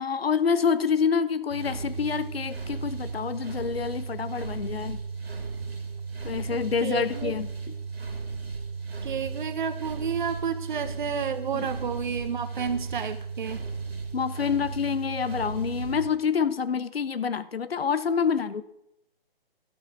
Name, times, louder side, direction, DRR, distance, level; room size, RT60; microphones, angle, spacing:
voice 1, 0.0-5.0 6.2-7.7 11.5-11.7 14.1-18.6, left 6 dB, 75° left, 14 dB, 0.8 m, -27 dB
sound 1, 1.5-16.1, right 4 dB, 80° right, 2.4 m, -35 dB
voice 2, 6.8-7.3 9.0-13.6, right 6 dB, 55° right, 12 dB, 1.0 m, -31 dB
12.0 x 5.6 x 5.9 m, 0.80 s
figure-of-eight pair, 145°, 30 cm